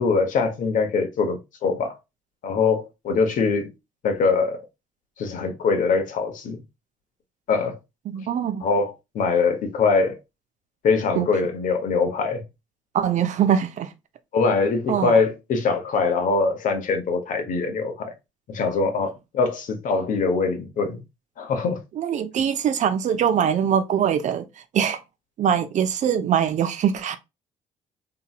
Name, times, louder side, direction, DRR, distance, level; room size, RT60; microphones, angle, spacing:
voice 1, 0.0-2.0 2.4-3.7 4.0-4.6 5.2-6.6 7.5-7.8 8.6-10.2 10.8-12.4 14.3-18.1 18.5-21.0 21.4-21.8, left 4 dB, 60° left, 0.9 m, -23 dB
voice 2, 8.1-8.6 11.1-11.3 12.9-13.9 14.9-15.2 21.9-24.5 24.7-25.0 25.4-27.2, right 8 dB, 55° right, 0.5 m, -22 dB
2.9 x 2.8 x 2.3 m
hypercardioid pair, 55°, 15 cm